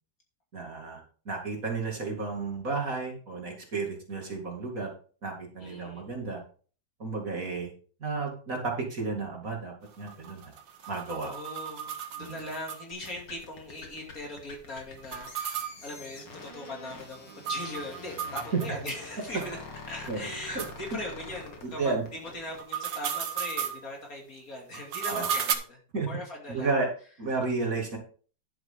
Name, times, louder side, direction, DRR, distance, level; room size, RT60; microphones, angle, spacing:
voice 1, 0.5-4.9 5.2-6.4 7.0-7.7 8.0-10.4 10.9-11.3 12.2-12.4 18.5-18.6 20.1-20.6 21.6-22.0 25.1-25.3 25.9-26.1 26.5-26.9 27.2-28.0, right 4 dB, 45° right, 1 dB, 2.7 m, -32 dB
voice 2, 5.6-6.1 10.8-19.6 19.9-25.8 26.0-26.7, left 1 dB, 45° left, -1 dB, 3.2 m, -40 dB
sound 1, 9.9-13.1 13.4-13.5 13.8-13.9 15.0-19.0 19.4-19.5 20.1-20.2 20.6-20.7 22.4-23.8 24.7-25.5, right 8 dB, 70° right, 1.8 m, -35 dB
sound 2, 12.9-22.6, left 3 dB, 70° left, 2.8 m, -46 dB
11.0 x 7.9 x 3.8 m, 0.41 s
omnidirectional pair, 2.1 m